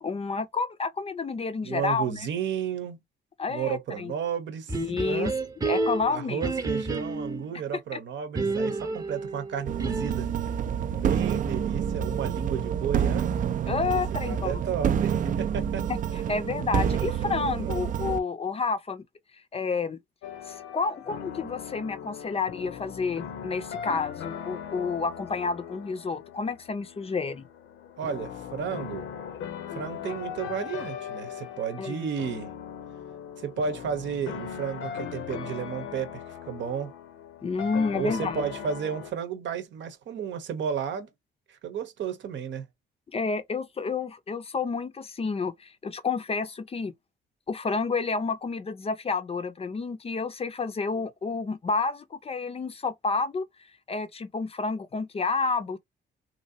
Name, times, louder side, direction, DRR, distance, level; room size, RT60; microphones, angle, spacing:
voice 1, 0.0-2.3 3.4-4.1 4.8-5.3 5.6-6.4 7.9-8.0 13.7-14.6 16.1-19.0 19.5-20.0 20.5-27.5 31.8-32.0 37.4-38.4 43.1-46.9 47.5-53.5 53.9-55.8, left 4 dB, 30° left, 0.5 m, -30 dB
voice 2, 1.6-3.0 3.5-5.3 6.1-10.3 10.9-13.3 13.9-15.9 16.8-17.1 17.6-17.8 28.0-29.1 29.7-32.5 33.4-36.9 37.9-41.1 41.5-42.6, right 7 dB, 65° right, 0.8 m, -33 dB
sound 1, 4.7-7.5 8.3-10.3, right 3 dB, 20° right, 0.8 m, -30 dB
sound 2, 9.7-18.2, right 8 dB, 40° right, 0.4 m, -28 dB
sound 3, 20.2-39.1, left 8 dB, 85° left, 0.7 m, -39 dB
3.0 x 2.6 x 2.6 m
cardioid pair, 90°, 20 cm